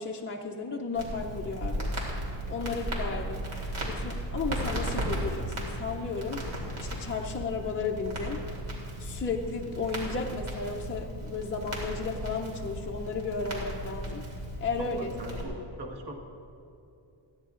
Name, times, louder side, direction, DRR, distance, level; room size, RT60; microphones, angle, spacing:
voice 1, 0.0-1.9 2.5-3.5 3.8-8.4 9.0-14.3 14.6-15.1, left 4 dB, 25° left, -1 dB, 0.5 m, -34 dB
Crackle, 0.9-15.4, equal, 75° right, 2.9 m, -35 dB
voice 2, 14.8-16.1, right 2 dB, 50° right, 1 dB, 1.4 m, -40 dB
28.0 x 10.0 x 2.5 m, 2.6 s
wide cardioid pair, 160°, 49 cm